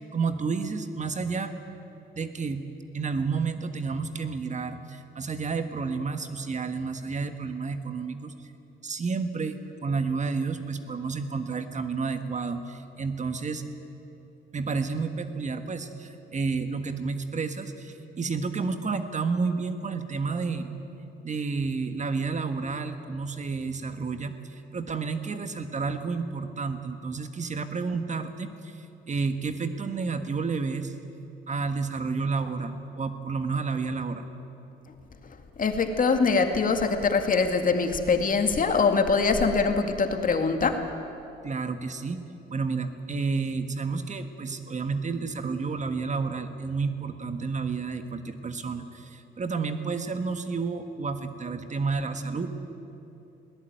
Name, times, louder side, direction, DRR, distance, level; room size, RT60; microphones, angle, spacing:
voice 1, 0.1-1.5 2.1-2.6 2.9-8.3 8.8-13.6 14.5-20.7 21.2-30.9 31.5-34.3 41.4-42.2 42.5-52.7, right 4 dB, 35° right, 9 dB, 1.5 m, -30 dB
voice 2, 35.6-40.8, left 4 dB, 45° left, 6 dB, 2.2 m, -23 dB
21.0 x 17.5 x 9.3 m, 2.9 s
cardioid pair, 90°, 20 cm